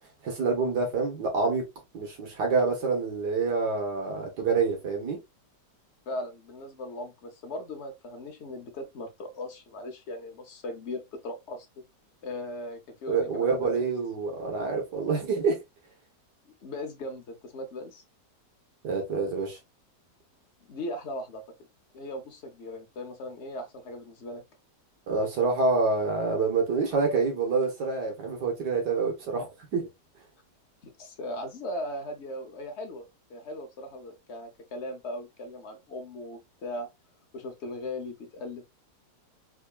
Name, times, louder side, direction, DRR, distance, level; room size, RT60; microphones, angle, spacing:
voice 1, 0.2-1.6 1.9-5.2 13.1-15.6 18.8-19.6 25.1-29.9, right 4 dB, 75° right, 1.8 m, -27 dB
voice 2, 6.1-11.7 12.2-13.8 16.5-18.0 20.7-21.4 21.9-24.4 30.8-36.9 37.3-38.6, left 1 dB, 50° left, 0.9 m, -38 dB
3.7 x 3.5 x 2.3 m
omnidirectional pair, 1.8 m